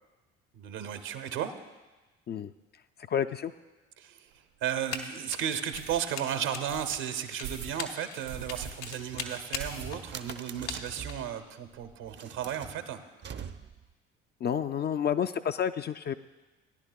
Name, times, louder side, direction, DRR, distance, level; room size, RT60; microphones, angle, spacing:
voice 1, 0.5-1.5 4.0-4.3 4.6-13.0, right 9 dB, 70° right, 8 dB, 1.0 m, -34 dB
voice 2, 3.0-3.5 14.4-16.1, left 8 dB, 30° left, 9 dB, 0.4 m, -30 dB
sound 1, 4.3-4.4 4.9-5.0 5.7-6.0 6.7-6.9 7.4-7.8 8.2-8.7 9.0-9.1 9.6-10.2 10.6-10.7 10.9-11.0 11.3-11.9, right 7 dB, 90° right, 2.5 m, -42 dB
Run, 4.9-5.1 5.3-11.3, left 6 dB, 80° left, 0.9 m, -39 dB
sound 2, 8.9-11.3 12.0-13.9, right 7 dB, 35° right, 0.6 m, -44 dB
17.5 x 10.5 x 2.3 m, 1.2 s
hypercardioid pair, 55°, 33 cm